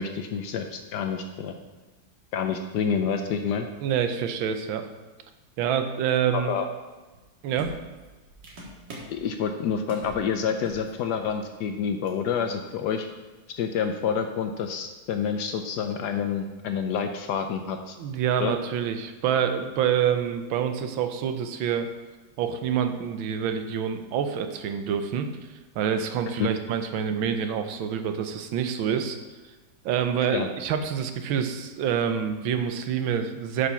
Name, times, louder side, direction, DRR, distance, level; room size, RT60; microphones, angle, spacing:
voice 1, 0.0-1.5 2.3-3.7 6.3-6.7 9.1-13.1 13.6-18.0 18.4-18.6 26.4-26.5 30.3-30.5, left 7 dB, 70° left, 6 dB, 1.0 m, -28 dB
voice 2, 3.8-4.8 5.6-6.6 7.4-7.7 18.0-21.9 22.4-25.5 25.7-29.2 29.8-33.7, right 8 dB, 85° right, 7 dB, 1.5 m, -27 dB
sound 1, 7.1-7.2 7.6-9.2 9.9-10.2 10.5-10.9 11.1-11.3 12.1-12.2, right 1 dB, 65° right, 2.3 m, -43 dB
8.1 x 5.2 x 5.6 m, 1.2 s
omnidirectional pair, 2.2 m